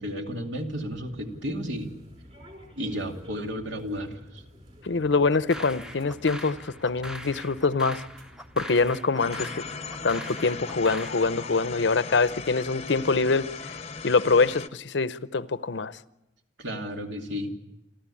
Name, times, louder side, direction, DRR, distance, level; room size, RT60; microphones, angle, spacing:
voice 1, 0.0-1.9 2.8-4.4 16.6-17.5, equal, 80° right, 2.6 m, -33 dB
sound 1, 0.5-8.9, equal, 35° right, 4.9 m, -50 dB
voice 2, 4.8-8.0 8.6-9.5 10.0-13.7 14.0-16.0, left 4 dB, 75° left, 0.7 m, -24 dB
sound 2, 5.3-11.2, equal, 5° right, 0.7 m, -41 dB
sound 3, 9.2-14.7, left 5 dB, 30° left, 0.7 m, -38 dB
29.0 x 13.0 x 8.6 m
head